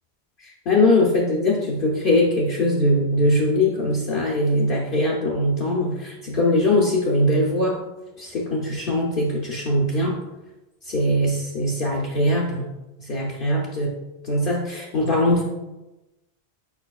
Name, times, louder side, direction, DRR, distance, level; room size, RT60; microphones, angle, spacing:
voice 1, 0.4-7.8 8.2-10.2 10.9-12.7 13.1-13.9 14.2-15.4, left 1 dB, 55° left, -3 dB, 0.8 m, -21 dB
4.9 x 4.7 x 2.3 m, 1.0 s
omnidirectional pair, 1.2 m